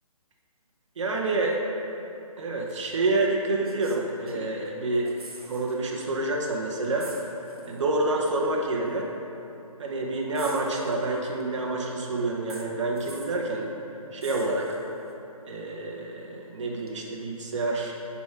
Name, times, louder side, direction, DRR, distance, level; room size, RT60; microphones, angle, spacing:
voice 1, 1.0-1.6 2.4-7.1 7.7-9.1 9.8-13.7 14.1-14.8 15.4-17.9, right 2 dB, 55° right, -1 dB, 1.1 m, -28 dB
sound 1, 2.7-2.8 3.6-4.7 4.9-5.8 6.1-6.2 7.0-7.8 8.9-9.0 10.4-11.4 12.5-13.4 14.2-15.1 16.9-17.0, right 2 dB, 80° right, 1.2 m, -46 dB
10.5 x 4.2 x 4.8 m, 2.9 s
figure-of-eight pair, 145°, 19 cm